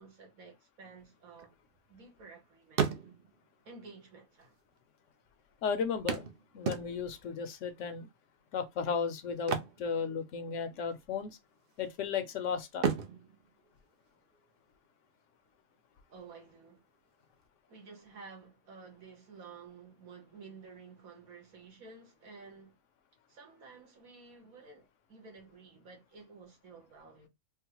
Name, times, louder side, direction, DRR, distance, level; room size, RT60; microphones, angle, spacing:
voice 1, 0.0-1.5 1.9-2.9 3.6-4.5 16.1-16.8 17.7-22.8 23.3-27.3, right 4 dB, 90° right, 1.6 m, -52 dB
sound 1, 1.1-2.3 2.6-3.5 4.4-4.5 4.7-4.8 6.1-7.3 9.3-10.6 10.9-11.2 11.7-12.3 12.7-14.5 16.5-16.6 17.0-17.1, right 7 dB, 55° right, 0.6 m, -35 dB
voice 2, 5.6-6.3 6.5-8.1 8.5-11.4 11.8-12.9, left 6 dB, 70° left, 0.9 m, -34 dB
3.7 x 2.1 x 2.9 m
omnidirectional pair, 1.4 m